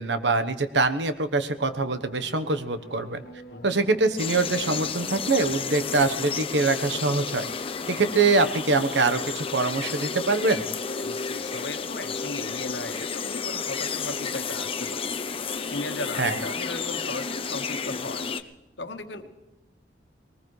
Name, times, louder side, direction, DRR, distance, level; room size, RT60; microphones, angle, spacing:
voice 1, 0.0-3.2 3.6-7.4 7.9-10.7 16.2-16.4, right 3 dB, 80° right, 10 dB, 1.1 m, -24 dB
sound 1, 1.5-8.9, equal, 55° left, 1.9 m, -47 dB
sound 2, 4.2-18.4, left 5 dB, 30° left, 0.7 m, -32 dB
voice 2, 10.9-15.1 15.6-18.3 18.8-19.3, left 2 dB, 75° left, 7 dB, 1.4 m, -36 dB
21.5 x 19.5 x 3.3 m, 1.0 s
head